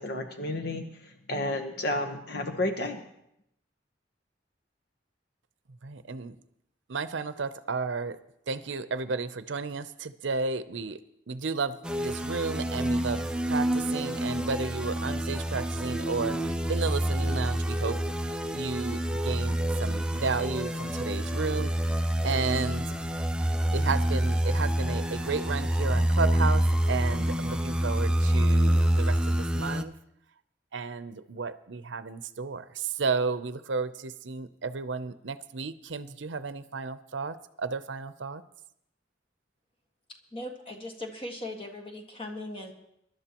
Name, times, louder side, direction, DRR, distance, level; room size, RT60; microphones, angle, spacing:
voice 1, 0.0-3.0, left 1 dB, 60° left, 5 dB, 1.0 m, -31 dB
voice 2, 5.8-6.4 6.9-8.2 8.5-11.0 11.3-22.0 22.2-22.9 23.7-29.9 30.7-38.4, right 4 dB, 85° right, 13 dB, 0.7 m, -33 dB
sound 1, 11.8-29.8, right 1 dB, 5° right, 0.5 m, -27 dB
voice 3, 40.3-42.7, left 1 dB, 30° left, 3 dB, 1.7 m, -39 dB
23.5 x 12.0 x 3.0 m, 0.79 s
head